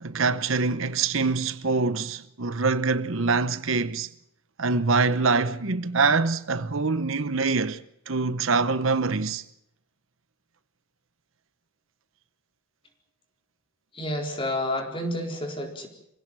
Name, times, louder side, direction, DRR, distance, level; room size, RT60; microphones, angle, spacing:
voice 1, 0.0-4.1 4.6-7.8 8.1-9.4, right 4 dB, 65° right, 0.9 m, -24 dB
voice 2, 13.9-15.9, left 1 dB, 25° left, 4.2 m, -30 dB
27.0 x 16.5 x 7.7 m
head